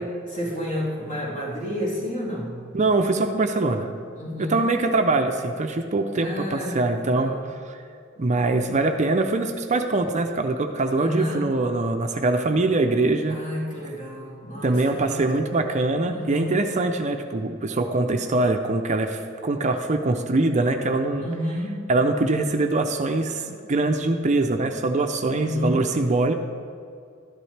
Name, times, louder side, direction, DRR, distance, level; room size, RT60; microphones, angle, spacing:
voice 1, 0.0-2.7 4.1-4.7 6.1-7.5 8.2-8.3 11.0-11.5 13.3-15.5 16.1-16.7 21.2-21.9 25.3-25.9, left 1 dB, 40° left, -5 dB, 2.6 m, -31 dB
voice 2, 2.7-3.9 4.4-7.3 7.7-7.8 8.2-13.4 14.6-21.2 21.9-26.3, right 2 dB, 35° right, 6 dB, 0.5 m, -23 dB
12.5 x 11.0 x 3.3 m, 2.3 s
head